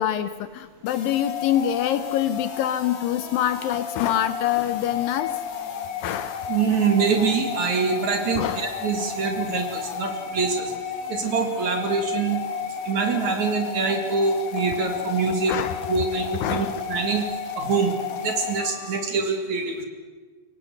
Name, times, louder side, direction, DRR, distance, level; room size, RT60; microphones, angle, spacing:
voice 1, 0.0-5.3 6.0-6.5 8.3-8.7 15.5-15.8 16.4-16.8, left 11 dB, 75° left, 12 dB, 2.3 m, -25 dB
sound 1, 0.9-19.1, left 7 dB, 50° left, 2.6 m, -32 dB
voice 2, 6.5-10.7 11.1-12.4 12.8-15.5 15.9-17.3 17.5-17.9 18.2-19.9, right 5 dB, 50° right, 6 dB, 3.2 m, -24 dB
23.5 x 17.5 x 8.0 m, 1.4 s
omnidirectional pair, 4.5 m